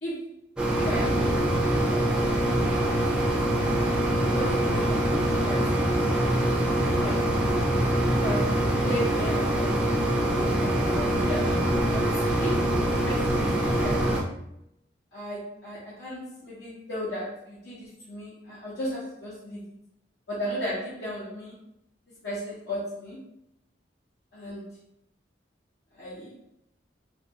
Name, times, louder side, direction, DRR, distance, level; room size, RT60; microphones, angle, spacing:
voice 1, 0.0-0.4 0.8-2.7 3.3-3.6 4.3-5.1 5.5-6.4 6.7-7.4 8.2-9.8 10.3-11.6 11.9-12.7 13.0-14.1 15.1-19.6 20.3-21.6 22.2-23.2 24.3-24.7 25.9-26.3, equal, 70° left, -8 dB, 0.8 m, -36 dB
sound 1, 0.6-14.2, right 1 dB, 5° right, 0.3 m, -24 dB
2.4 x 2.2 x 2.7 m, 0.77 s
head